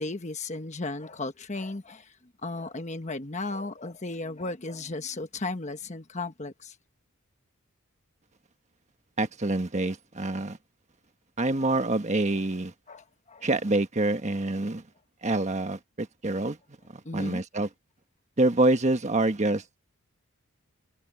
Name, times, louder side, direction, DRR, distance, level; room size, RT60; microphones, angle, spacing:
voice 1, 0.0-2.2 2.4-6.7 12.9-13.5 17.0-17.4, left 2 dB, 30° left, 1.2 m, -35 dB
voice 2, 9.2-10.6 11.4-12.7 13.4-14.8 15.2-16.6 17.1-17.7 18.4-19.6, right 2 dB, 30° right, 1.3 m, -26 dB
head